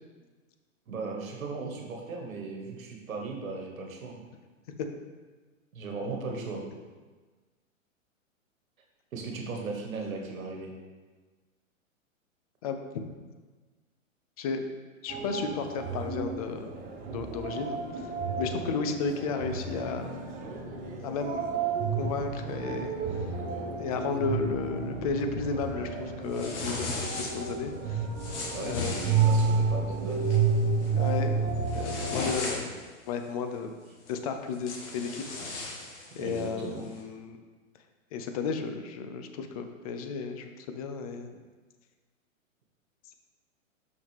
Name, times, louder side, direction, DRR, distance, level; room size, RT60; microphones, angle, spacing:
voice 1, 0.9-4.2 5.7-6.6 9.1-10.7 28.5-30.5 36.2-36.8, right 4 dB, 75° right, 1 dB, 1.5 m, -37 dB
voice 2, 12.6-13.1 14.4-14.6 15.0-16.7 17.1-18.1 18.4-20.1 21.0-21.6 22.0-23.4 23.8-28.1 28.6-29.3 31.0-32.7 33.1-33.8 34.1-35.6 36.1-37.4 38.1-41.3, left 5 dB, 30° left, 7 dB, 0.4 m, -33 dB
sound 1, 15.1-32.3, right 5 dB, 20° right, 0.7 m, -31 dB
sound 2, 26.3-27.5 28.2-29.6 30.1-30.4 30.8-31.1 31.5-32.9 34.1-34.2 34.5-36.5, left 3 dB, 55° left, 1.6 m, -36 dB
6.1 x 5.8 x 3.5 m, 1.4 s
hypercardioid pair, 125°, 41 cm